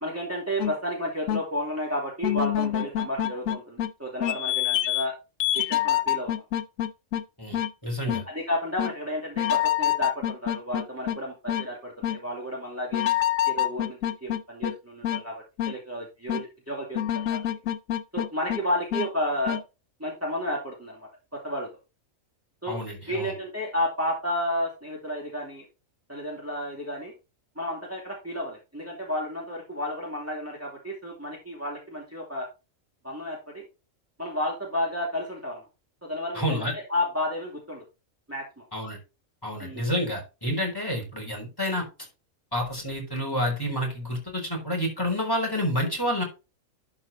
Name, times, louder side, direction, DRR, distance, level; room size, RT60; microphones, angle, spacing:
voice 1, 0.0-5.1 5.5-6.4 8.0-13.0 13.5-17.0 17.3-17.4 18.1-19.6 20.0-21.1 21.4-21.7 22.6-22.8 23.1-25.7 26.1-27.1 27.6-32.5 33.0-33.6 34.2-35.7 36.0-37.8 38.3-38.6 39.6-39.9, left 1 dB, 10° right, -3 dB, 2.5 m, -32 dB
sound 1, 0.6-0.7 1.3-1.4 2.2-3.9 4.2-5.1 5.4-7.2 7.5-7.7 8.1-8.2 8.8-8.9 9.4-11.2 11.5-11.6 12.0-12.2 12.9-14.7 15.0-15.2 15.6-15.7 16.3-16.4 16.9-18.6 18.9-19.1 19.5-19.6, left 12 dB, 80° left, 1.1 m, -26 dB
voice 2, 7.4-8.2 22.7-23.3 36.3-36.7 38.7-39.0 39.4-41.8 42.5-46.2, equal, 15° left, 0 dB, 4.2 m, -29 dB
12.0 x 5.0 x 4.2 m, 0.28 s
omnidirectional pair, 1.4 m